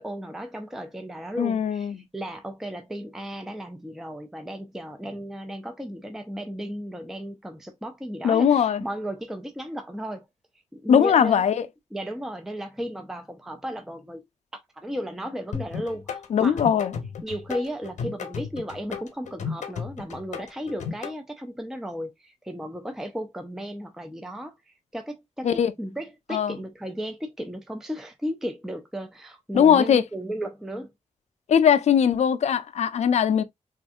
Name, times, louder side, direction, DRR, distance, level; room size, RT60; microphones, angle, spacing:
voice 1, 0.0-10.3 10.7-11.4 11.9-14.2 14.7-16.6 17.2-30.9, equal, 5° right, 0.4 m, -35 dB
voice 2, 1.4-2.1 8.2-8.8 10.9-11.7 16.3-16.9 25.4-25.7 26.3-26.6 29.5-30.0 31.5-33.4, left 8 dB, 70° left, 0.4 m, -20 dB
sound 1, 15.5-21.1, left 6 dB, 85° left, 0.7 m, -34 dB
3.5 x 2.5 x 2.3 m
wide cardioid pair, 135°, 12 cm